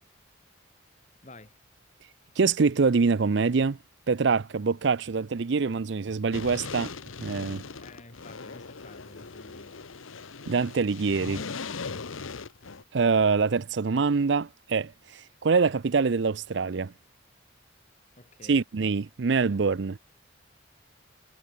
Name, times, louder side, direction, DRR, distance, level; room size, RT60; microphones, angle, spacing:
voice 1, 1.2-1.6 7.6-9.8 18.2-18.6, left 2 dB, 35° left, 3.5 m, -51 dB
voice 2, 2.4-3.8 4.1-6.9 7.2-7.6 10.5-11.5 12.9-16.9 18.5-20.0, right 4 dB, 60° right, 0.5 m, -25 dB
sound 1, 6.3-12.8, left 4 dB, 85° left, 1.0 m, -39 dB
head